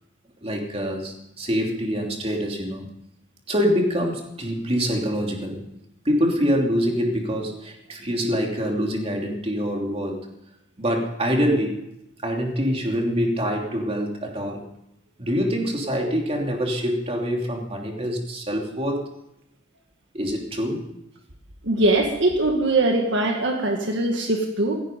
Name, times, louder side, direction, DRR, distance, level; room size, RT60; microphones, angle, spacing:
voice 1, 0.4-2.9 3.5-5.6 6.0-10.2 10.8-11.8 12.2-14.6 15.2-19.1 20.1-20.9, equal, 30° right, 1 dB, 2.9 m, -25 dB
voice 2, 21.6-24.8, right 2 dB, 60° right, 3 dB, 1.8 m, -21 dB
16.5 x 16.0 x 5.3 m, 0.83 s
head